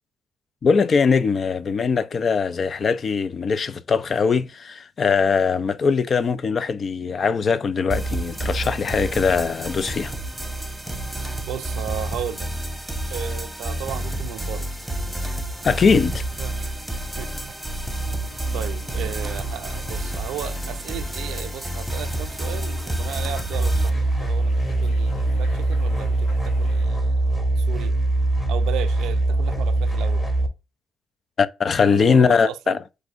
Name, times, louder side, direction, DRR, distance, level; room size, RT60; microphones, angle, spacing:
voice 1, 0.6-10.1 15.6-16.2 31.4-32.8, left 5 dB, 45° left, 0.4 m, -21 dB
sound 1, 7.9-23.9, right 1 dB, ahead, 1.1 m, -29 dB
voice 2, 11.5-12.5 13.1-14.7 16.4-16.8 17.2-17.6 18.1-27.1 27.6-27.9 28.5-30.2 31.9-32.8, right 10 dB, 90° right, 0.5 m, -35 dB
sound 2, 18.3-26.9, left 3 dB, 80° left, 1.2 m, -45 dB
sound 3, 23.5-30.5, right 2 dB, 15° left, 1.3 m, -22 dB
7.7 x 2.6 x 2.4 m
cardioid pair, 90°, 0 cm